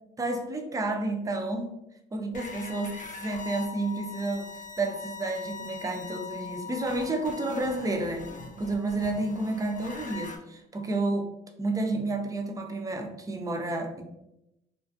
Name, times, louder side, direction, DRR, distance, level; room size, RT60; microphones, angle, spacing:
voice 1, 0.2-1.7 2.1-4.5 4.8-8.3 8.6-11.3 11.6-14.0, right 2 dB, 15° right, 5 dB, 0.4 m, -30 dB
sound 1, 2.3-10.4, left 5 dB, 40° left, 0.5 m, -42 dB
sound 2, 5.5-9.4, right 5 dB, 80° right, 0.6 m, -51 dB
2.4 x 2.3 x 2.5 m, 0.87 s
cardioid pair, 90°, 20 cm